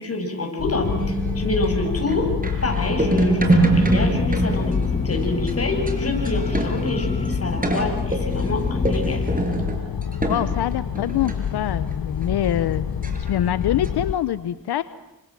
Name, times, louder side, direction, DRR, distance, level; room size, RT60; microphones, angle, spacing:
voice 1, 0.0-2.3 2.6-9.2, left 2 dB, 40° left, 3 dB, 7.6 m, -27 dB
sound 1, 0.6-14.1, left 8 dB, 65° left, 1.3 m, -28 dB
sound 2, 0.8-7.0 7.3-7.4 7.6-11.4 11.9-12.0 12.2-12.3 13.0-13.3 13.6-13.9, right 2 dB, 20° right, 5.9 m, -25 dB
sound 3, 2.9-9.4, left 2 dB, 20° left, 1.5 m, -28 dB
voice 2, 10.3-12.8 13.3-14.8, left 11 dB, 90° left, 14 dB, 0.9 m, -24 dB
29.5 x 26.5 x 7.7 m, 0.94 s
cardioid pair, 80°, 38 cm